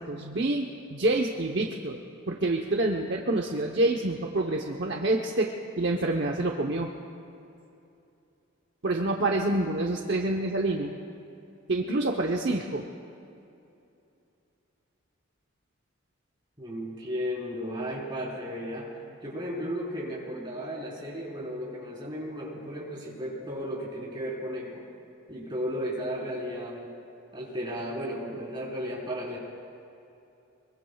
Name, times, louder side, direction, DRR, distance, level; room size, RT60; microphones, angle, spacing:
voice 1, 0.0-2.0 2.3-6.9 8.8-10.9 11.7-12.8, right 2 dB, 55° right, 1 dB, 0.9 m, -27 dB
voice 2, 16.6-18.9 19.2-24.8 25.3-26.9 27.3-29.4, equal, 25° right, -6 dB, 4.2 m, -34 dB
25.0 x 22.5 x 2.4 m, 2.7 s
head